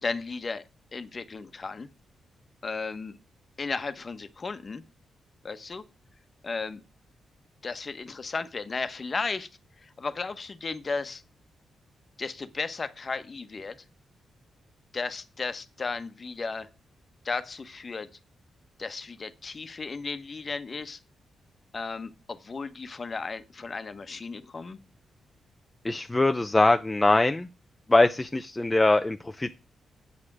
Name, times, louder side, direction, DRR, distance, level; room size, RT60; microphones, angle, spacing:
voice 1, 0.0-0.6 0.9-1.9 2.6-3.2 3.6-4.8 5.4-5.8 6.4-6.8 7.6-9.5 9.8-11.2 12.2-13.7 14.9-16.7 17.2-18.1 18.8-21.0 21.7-24.8, left 4 dB, 40° left, 1.1 m, -34 dB
voice 2, 25.8-27.5 27.9-29.5, left 2 dB, 15° left, 0.6 m, -22 dB
8.2 x 7.8 x 6.1 m
cardioid pair, 85°, 0 cm